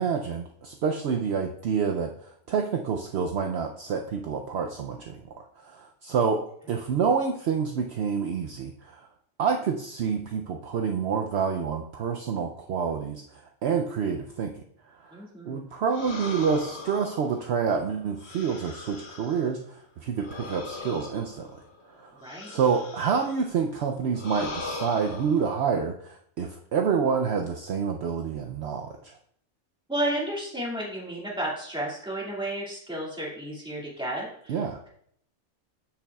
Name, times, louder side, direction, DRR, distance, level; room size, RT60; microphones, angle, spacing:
voice 1, 0.0-9.1 9.4-14.5 14.9-15.2 15.5-21.6 21.9-22.2 22.5-29.2 34.5-34.8, right 6 dB, 65° right, 3 dB, 0.8 m, -28 dB
voice 2, 15.1-15.7 22.1-22.6 29.9-34.6, right 1 dB, 5° right, -5 dB, 2.0 m, -32 dB
sound 1, 15.9-19.6 20.2-23.5 24.1-25.6, left 3 dB, 55° left, 1.1 m, -39 dB
7.9 x 7.0 x 2.3 m, 0.66 s
omnidirectional pair, 1.3 m